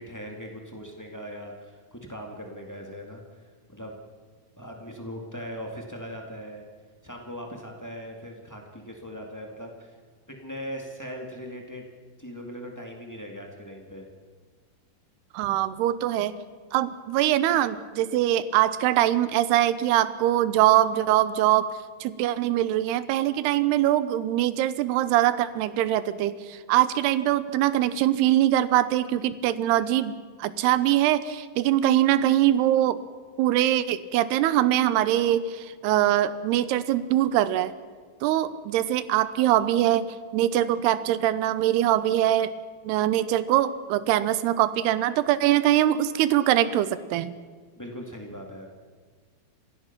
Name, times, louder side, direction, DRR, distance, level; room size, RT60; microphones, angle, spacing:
voice 1, 0.0-3.9 4.6-6.6 7.0-10.0 10.3-11.9 12.2-14.1 15.4-15.5 47.8-48.7, equal, 20° left, 1 dB, 0.5 m, -40 dB
voice 2, 15.3-16.3 16.7-21.7 22.0-33.0 33.4-37.7 38.2-42.5 42.8-47.3, right 13 dB, 85° right, 14 dB, 2.9 m, -23 dB
30.0 x 16.5 x 6.0 m, 1.5 s
omnidirectional pair, 4.6 m